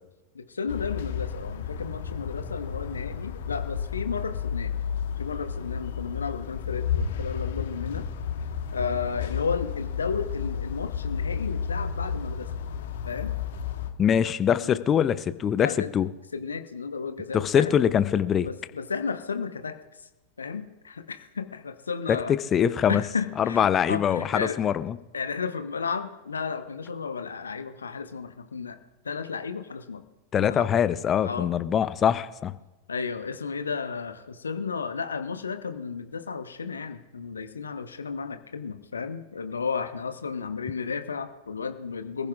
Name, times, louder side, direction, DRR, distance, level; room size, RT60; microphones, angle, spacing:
voice 1, 0.3-4.7 5.2-8.1 8.7-12.5 13.0-13.3 14.2-14.3 14.6-14.8 15.6-15.9 16.3-17.7 18.4-19.8 20.4-22.4 22.9-24.6 25.1-28.8 29.0-30.0 30.4-30.7 31.2-31.5 32.9-42.3, left 5 dB, 75° left, 9 dB, 1.0 m, -33 dB
sound 1, 0.7-13.9, left 7 dB, 60° left, 1.3 m, -32 dB
voice 2, 14.0-16.1 17.3-18.5 22.1-22.2 22.5-23.0 23.4-25.0 30.3-32.5, left 8 dB, 25° left, 14 dB, 0.6 m, -23 dB
26.5 x 15.0 x 2.4 m, 1.0 s
figure-of-eight pair, 90°, 0 cm